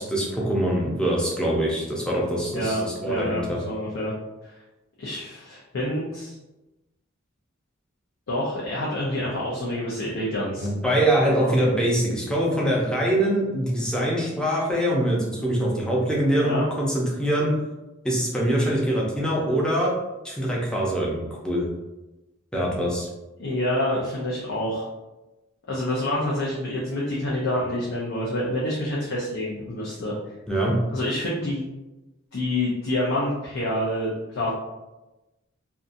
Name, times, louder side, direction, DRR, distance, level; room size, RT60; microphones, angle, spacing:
voice 1, 0.0-3.6 10.6-17.5 18.0-19.9 20.2-21.7 22.5-23.1 30.5-30.7, right 1 dB, 5° left, -4 dB, 0.5 m, -24 dB
voice 2, 2.5-4.1 4.4-4.5 5.0-6.3 8.3-10.7 11.3-11.5 16.3-16.6 23.4-24.9 25.7-30.1 30.9-31.6 32.3-34.5, left 1 dB, 85° left, -6 dB, 0.6 m, -27 dB
2.7 x 2.4 x 2.5 m, 1.0 s
head